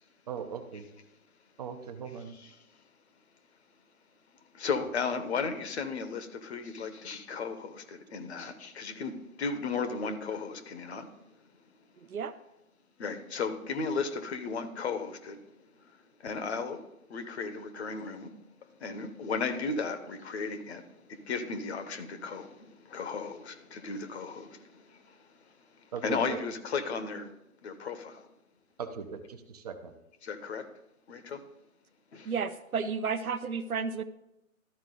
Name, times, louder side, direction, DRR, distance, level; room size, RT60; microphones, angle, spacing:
voice 1, 0.3-0.9 1.6-2.4 25.9-26.4 28.8-29.9, right 6 dB, 30° right, 8 dB, 0.6 m, -39 dB
voice 2, 4.5-11.1 13.0-15.4 16.2-16.8 17.1-18.3 18.8-25.2 26.0-27.3 27.6-28.3 30.2-30.7 31.1-31.4 32.1-32.3, left 5 dB, 50° left, 9 dB, 1.1 m, -35 dB
voice 3, 32.3-34.0, right 5 dB, 90° right, 12 dB, 0.8 m, -32 dB
13.0 x 4.7 x 3.8 m, 0.89 s
hypercardioid pair, 145°, 42 cm